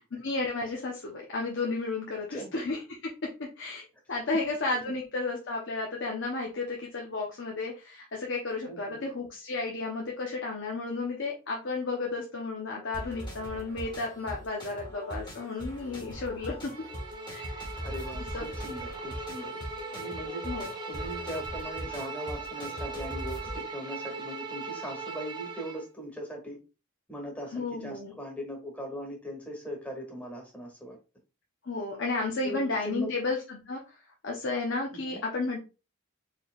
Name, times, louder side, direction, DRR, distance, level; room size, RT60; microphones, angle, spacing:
voice 1, 0.2-3.1 3.4-16.7 17.3-17.6 18.3-18.4 20.4-20.7 27.5-28.1 31.7-33.8 34.2-35.6, left 3 dB, 60° left, -1 dB, 0.8 m, -33 dB
voice 2, 8.7-9.0 17.8-19.6 19.9-20.4 20.8-26.6 27.1-31.0 32.4-33.1 34.9-35.2, equal, 5° left, 0 dB, 1.4 m, -39 dB
sound 1, 12.9-23.6, equal, 20° left, 1.4 m, -41 dB
Bowed string instrument, 16.7-25.8, right 3 dB, 20° right, 0.6 m, -39 dB
4.5 x 3.3 x 2.4 m, 0.30 s
head